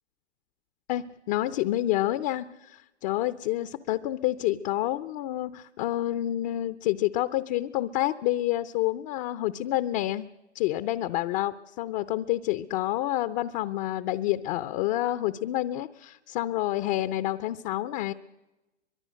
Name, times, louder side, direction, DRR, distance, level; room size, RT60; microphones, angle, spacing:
voice 1, 0.9-10.3 10.5-18.1, left 14 dB, 40° left, 13 dB, 0.7 m, -28 dB
23.5 x 22.0 x 6.4 m, 1.1 s
hypercardioid pair, 120°, 34 cm